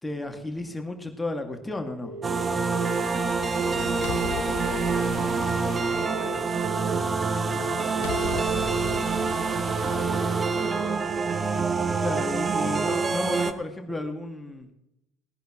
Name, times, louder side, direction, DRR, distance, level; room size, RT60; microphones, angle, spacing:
voice 1, 0.0-2.1 12.0-14.7, left 2 dB, 15° left, 4 dB, 2.4 m, -33 dB
sound 1, 2.0-3.0 4.0-5.0 6.0-7.0 8.0-9.0 9.9-11.0 11.9-12.9 13.9-14.0, right 2 dB, 60° right, 3.7 m, -38 dB
sound 2, 2.2-13.5, right 4 dB, 30° right, 1.1 m, -26 dB
sound 3, 2.8-6.9 8.0-10.9, left 13 dB, 70° left, 0.5 m, -38 dB
voice 2, 3.5-6.5 7.4-9.7, right 2 dB, 80° right, 1 dB, 3.1 m, -42 dB
19.5 x 11.0 x 3.2 m, 0.84 s
hypercardioid pair, 65°, 0 cm